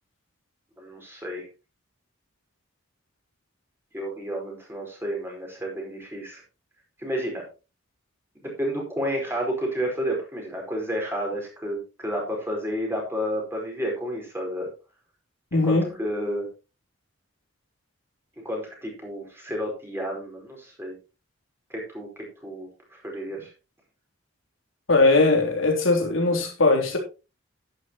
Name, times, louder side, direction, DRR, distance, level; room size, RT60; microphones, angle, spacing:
voice 1, 0.8-1.4 3.9-6.4 7.0-7.4 8.4-14.7 15.5-16.5 18.4-20.9 21.7-22.1 22.4-23.5, equal, 10° right, 0 dB, 4.7 m, -31 dB
voice 2, 15.5-15.9 24.9-27.0, left 3 dB, 75° left, 2 dB, 3.4 m, -20 dB
11.5 x 10.5 x 3.0 m, 0.30 s
head